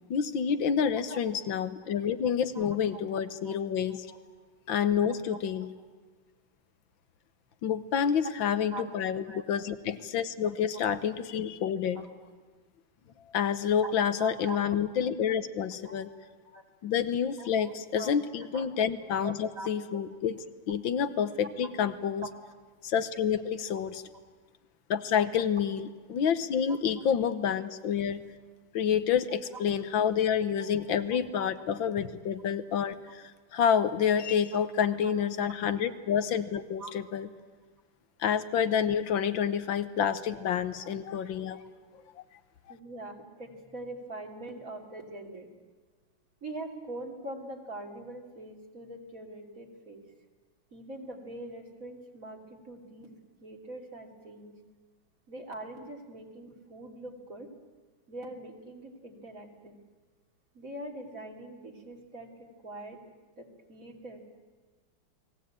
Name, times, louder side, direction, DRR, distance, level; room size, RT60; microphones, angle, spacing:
voice 1, 0.1-4.0 4.7-5.7 7.6-12.0 13.3-16.1 16.8-22.3 22.8-24.0 24.9-28.2 28.7-37.3 38.2-41.6, left 8 dB, 75° left, 12 dB, 1.8 m, -28 dB
voice 2, 2.5-3.0 3.4-3.6 3.9-4.2 5.0-5.4 8.7-8.9 9.3-9.4 11.9-12.1 13.8-13.9 14.2-14.6 15.8-16.0 16.5-16.6 17.4-18.1 18.5-18.7 19.0-19.7 21.4-21.5 23.7-23.8 30.6-30.7 34.5-35.1 36.8-36.9 42.7-45.5 46.4-50.0 50.7-53.1 53.4-54.5 55.3-57.5 58.1-59.8 60.5-63.0 63.4-64.4, right 2 dB, 40° right, 3 dB, 3.3 m, -43 dB
29.5 x 20.0 x 8.9 m, 1.4 s
omnidirectional pair, 2.1 m